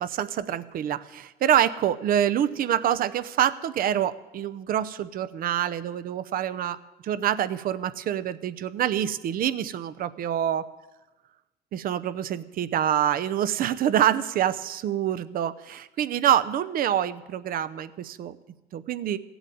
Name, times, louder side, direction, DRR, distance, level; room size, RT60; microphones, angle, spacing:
voice 1, 0.0-6.8 7.0-10.7 11.7-18.4 18.7-19.2, right 10 dB, 60° right, 15 dB, 0.7 m, -26 dB
15.5 x 8.1 x 9.3 m, 1.1 s
cardioid pair, 110°, 17 cm